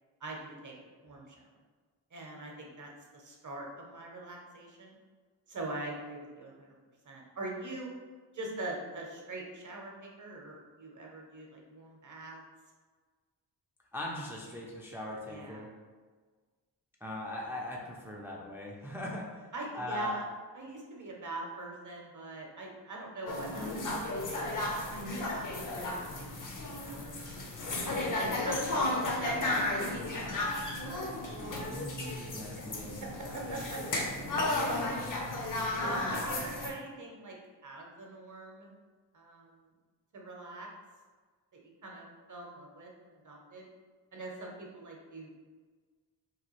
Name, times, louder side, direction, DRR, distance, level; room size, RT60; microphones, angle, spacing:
voice 1, 0.2-0.7 1.0-1.4 2.1-5.0 5.5-6.7 7.0-7.9 8.3-12.4 15.3-15.6 19.5-20.3 20.5-24.0 24.3-27.1 27.6-27.8 28.2-30.2 31.1-31.3 33.0-34.0 34.6-35.3 35.8-37.4 37.6-38.7 39.1-39.6 40.1-40.7 41.5-43.7 44.1-45.5, right 2 dB, 40° right, -1 dB, 0.7 m, -43 dB
voice 2, 13.9-15.7 17.0-19.4 19.7-20.2 31.4-33.0 34.2-34.7, left 1 dB, 5° right, -2 dB, 0.4 m, -40 dB
sound 1, 23.3-36.7, left 2 dB, 45° left, 0.6 m, -34 dB
3.0 x 2.2 x 3.0 m, 1.4 s
cardioid pair, 70°, 45 cm